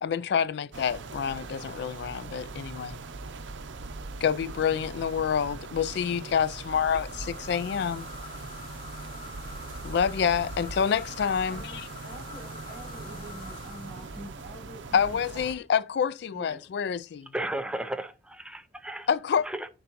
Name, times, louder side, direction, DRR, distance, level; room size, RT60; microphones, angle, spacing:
voice 1, 0.0-3.0 4.2-8.1 9.8-11.8 14.9-17.3 19.1-19.5, left 7 dB, 65° left, 0.3 m, -27 dB
sound 1, 0.7-15.5, right 3 dB, 80° right, 0.6 m, -41 dB
sound 2, 6.6-15.1, left 3 dB, 30° left, 2.5 m, -47 dB
voice 2, 11.5-15.5 16.3-16.6, right 1 dB, 40° right, 4.1 m, -45 dB
voice 3, 17.3-19.1 19.4-19.7, right 1 dB, 5° right, 0.5 m, -34 dB
10.0 x 3.9 x 2.9 m
head